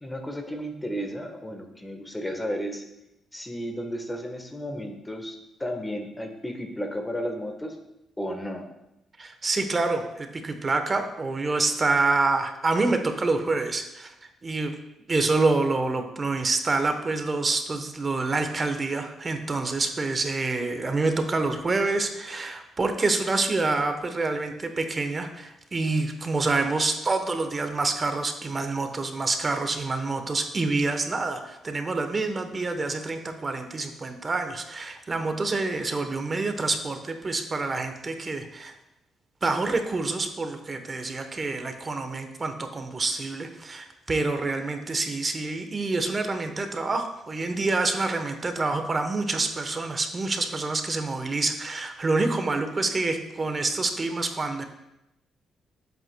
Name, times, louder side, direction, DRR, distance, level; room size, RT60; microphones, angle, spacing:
voice 1, 0.0-2.8 3.3-7.8 8.2-8.7, equal, 15° left, 5 dB, 1.1 m, -33 dB
voice 2, 9.2-14.1 14.4-14.7 15.1-38.7 39.4-54.6, right 3 dB, 30° right, 7 dB, 0.9 m, -27 dB
10.5 x 7.9 x 2.2 m, 0.89 s
cardioid pair, 90°, 0 cm